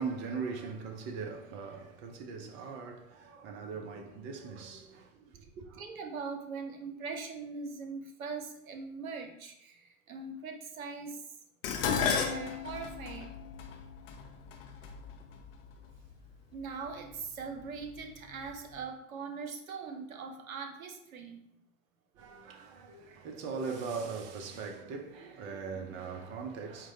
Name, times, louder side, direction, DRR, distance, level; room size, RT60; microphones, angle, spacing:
voice 1, 0.0-5.8 22.1-26.9, right 5 dB, 30° right, 0.4 m, -40 dB
voice 2, 5.8-11.3 12.0-13.3 16.5-21.4, right 4 dB, 75° right, 0.7 m, -41 dB
Dishes pots and pans, 11.6-16.0 16.9-17.3 17.7-18.5 18.8-18.9, left 6 dB, 45° left, 0.5 m, -34 dB
4.4 x 2.1 x 2.6 m
figure-of-eight pair, 85°, 42 cm